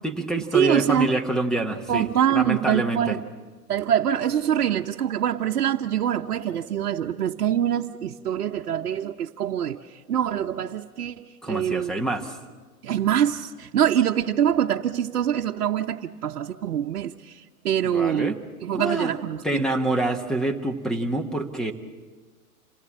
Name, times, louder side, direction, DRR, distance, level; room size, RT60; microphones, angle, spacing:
voice 1, 0.0-2.1 2.3-3.2 11.4-12.4 17.8-18.4 18.7-19.2 19.4-21.7, right 1 dB, ahead, 6 dB, 1.2 m, -26 dB
voice 2, 0.5-1.2 1.9-3.2 3.7-11.9 12.8-18.3 18.6-19.6, right 10 dB, 70° right, 0 dB, 1.0 m, -24 dB
28.0 x 18.5 x 7.4 m, 1.4 s
hypercardioid pair, 130°, 46 cm